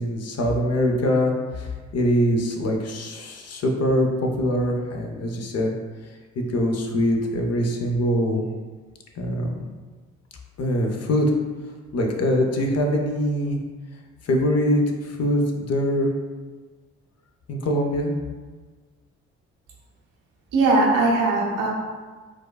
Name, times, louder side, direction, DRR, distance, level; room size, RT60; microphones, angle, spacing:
voice 1, 0.0-4.1 4.4-5.7 6.5-8.4 9.2-9.6 10.6-11.3 11.9-13.6 14.2-16.1 17.5-18.1, equal, 50° left, 2 dB, 0.7 m, -23 dB
voice 2, 20.5-21.7, right 2 dB, 75° right, -3 dB, 0.9 m, -19 dB
4.6 x 2.3 x 2.3 m, 1.4 s
hypercardioid pair, 45°, 33 cm